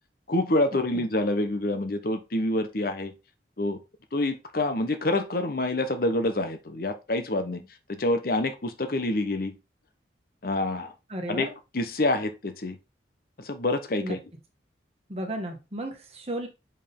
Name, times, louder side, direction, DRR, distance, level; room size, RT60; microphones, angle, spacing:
voice 1, 0.3-3.1 3.6-3.8 4.1-7.6 7.9-9.5 10.4-10.9 11.3-11.5 11.7-12.8 13.4-14.2, left 2 dB, 50° left, 1.0 m, -27 dB
voice 2, 11.1-11.5 14.0-14.2 15.1-16.5, right 1 dB, 35° right, 1.6 m, -33 dB
6.8 x 5.4 x 3.6 m
head